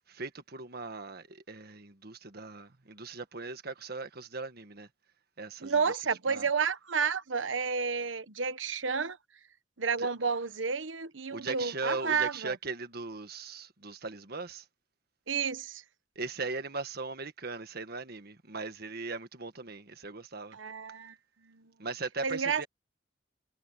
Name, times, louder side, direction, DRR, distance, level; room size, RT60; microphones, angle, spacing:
voice 1, 0.1-4.9 5.4-6.5 10.0-10.1 11.3-14.7 16.2-20.6 21.8-22.7, right 3 dB, 55° right, 1.6 m, -39 dB
voice 2, 5.6-9.2 9.8-12.5 15.3-15.8 20.5-21.1 21.5-21.6 22.2-22.7, right 5 dB, 85° right, 1.2 m, -31 dB
head